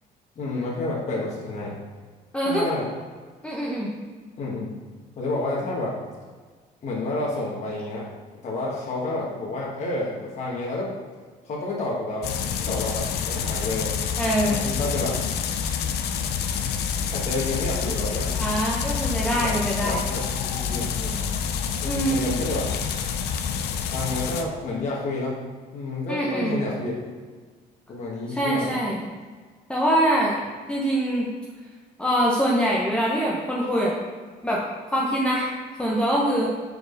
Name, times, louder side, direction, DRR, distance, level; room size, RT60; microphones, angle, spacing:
voice 1, 0.4-1.8 2.4-2.9 4.4-4.7 5.2-5.9 6.8-8.1 8.4-10.9 11.4-12.3 12.6-13.9 14.5-15.2 17.1-18.3 19.4-21.2 21.8-22.7 23.9-25.4 25.7-27.0 27.9-28.7, left 2 dB, 45° left, -5 dB, 1.4 m, -29 dB
voice 2, 2.3-2.7 3.4-3.9 14.2-14.6 18.3-20.0 21.8-22.3 26.1-26.6 28.3-29.0 29.7-30.4 30.7-31.3 32.0-34.0 34.4-34.6 34.9-35.5 35.8-36.5, right 1 dB, 5° left, -4 dB, 0.9 m, -23 dB
sound 1, 12.2-24.4, left 7 dB, 75° left, 0.6 m, -27 dB
4.9 x 4.6 x 5.2 m, 1.5 s
cardioid pair, 110°, 17 cm